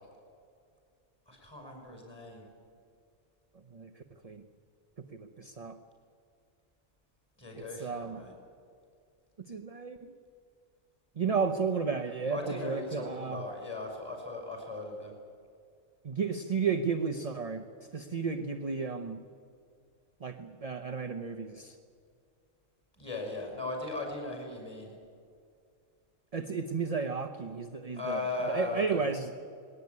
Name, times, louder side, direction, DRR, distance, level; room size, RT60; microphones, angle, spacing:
voice 1, 1.3-2.4 7.4-8.3 12.3-15.1 23.0-24.9 27.9-29.1, left 3 dB, 15° left, 1 dB, 6.4 m, -38 dB
voice 2, 3.7-4.4 5.0-5.8 7.6-8.2 9.4-10.1 11.1-13.4 16.0-19.2 20.2-21.8 26.3-29.4, right 5 dB, 30° right, 6 dB, 0.8 m, -33 dB
20.5 x 18.0 x 9.6 m, 2.3 s
omnidirectional pair, 1.4 m